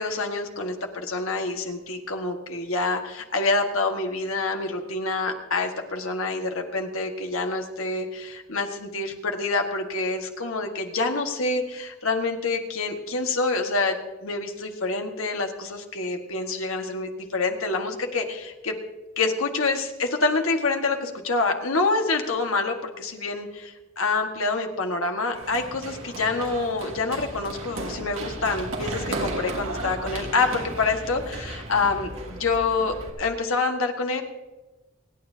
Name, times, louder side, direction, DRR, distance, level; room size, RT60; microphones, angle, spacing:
voice 1, 0.0-14.0 14.2-18.7 19.2-32.1 32.4-34.2, left 3 dB, 75° left, 4 dB, 1.6 m, -27 dB
Run, 25.3-33.1, right 2 dB, 70° right, 2.3 m, -35 dB
28.5 x 9.6 x 2.8 m, 1.2 s
head